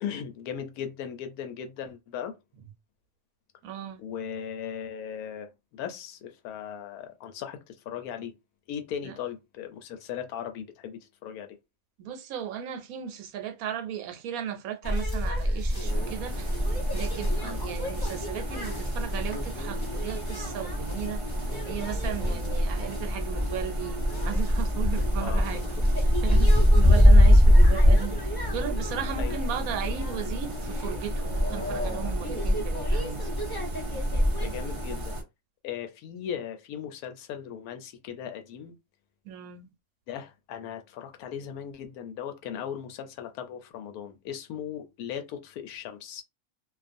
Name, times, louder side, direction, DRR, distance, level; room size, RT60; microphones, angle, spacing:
voice 1, 0.0-2.4 4.0-8.3 8.7-11.5 17.4-17.6 22.2-22.4 25.2-25.6 29.2-29.4 32.5-32.7 34.4-35.2 35.6-38.7 40.1-46.2, left 8 dB, 90° left, 1.1 m, -38 dB
voice 2, 3.6-4.0 9.0-9.1 12.0-16.5 16.9-21.2 21.6-25.7 26.0-28.2 28.5-33.2 39.2-39.7, right 9 dB, 75° right, 1.0 m, -36 dB
sound 1, 14.8-34.5, equal, 25° left, 0.5 m, -24 dB
sound 2, 15.8-35.2, equal, 45° right, 0.4 m, -35 dB
2.4 x 2.4 x 2.5 m
omnidirectional pair, 1.5 m